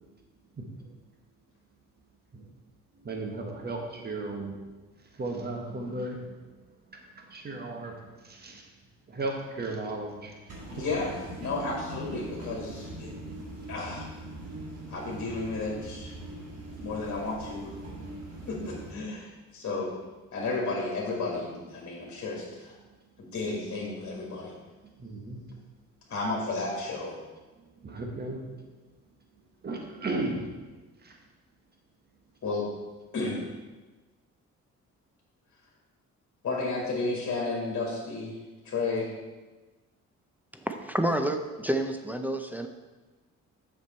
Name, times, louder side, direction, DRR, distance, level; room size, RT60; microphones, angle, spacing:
voice 1, 0.6-0.9 2.3-2.5 3.0-4.6 5.1-6.5 6.9-8.6 9.1-10.4 10.8-10.9 14.8-14.9 24.8-25.6 27.8-28.7 29.6-30.6 31.0-31.2, right 2 dB, 30° right, 2 dB, 1.4 m, -36 dB
sound 1, 10.5-18.9, right 1 dB, 55° right, 2.0 m, -41 dB
voice 2, 10.7-13.1 13.7-14.1 14.9-16.1 16.8-17.8 18.5-20.0 20.3-22.7 23.2-24.5 26.1-27.2 32.4-32.7 33.1-33.4 36.4-38.4 38.6-39.1, left 3 dB, 50° left, -3 dB, 2.0 m, -32 dB
voice 3, 40.5-42.7, right 1 dB, 5° right, 5 dB, 0.6 m, -29 dB
7.1 x 6.2 x 4.3 m, 1.2 s
cardioid pair, 90°, 30 cm